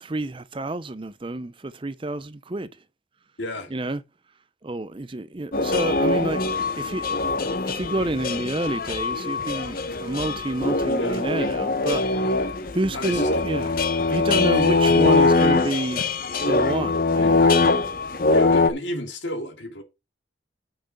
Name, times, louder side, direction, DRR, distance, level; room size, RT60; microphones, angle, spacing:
voice 1, 0.0-2.8 3.7-4.0 4.6-6.4 6.7-12.1 12.7-13.8 14.1-16.0 16.5-17.5, right 2 dB, 25° right, 0.5 m, -29 dB
voice 2, 3.4-3.7 11.0-11.2 12.9-13.3 13.6-14.2 14.5-14.8 17.2-17.7 18.3-19.8, left 1 dB, 70° left, 2.4 m, -33 dB
sound 1, 5.5-18.7, left 3 dB, 45° left, 1.0 m, -22 dB
6.5 x 5.9 x 6.6 m
head